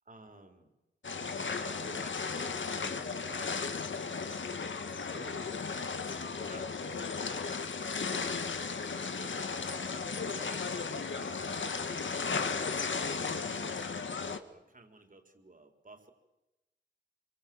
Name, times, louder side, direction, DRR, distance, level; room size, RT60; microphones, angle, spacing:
voice 1, 0.1-0.7 1.4-3.9 5.0-5.5 6.3-7.9 8.7-10.0 10.3-16.1, right 2 dB, 45° right, 6 dB, 4.2 m, -53 dB
sound 1, 1.0-14.4, left 5 dB, 90° left, 1.8 m, -35 dB
27.5 x 25.0 x 7.9 m, 0.98 s
wide cardioid pair, 100°, 19 cm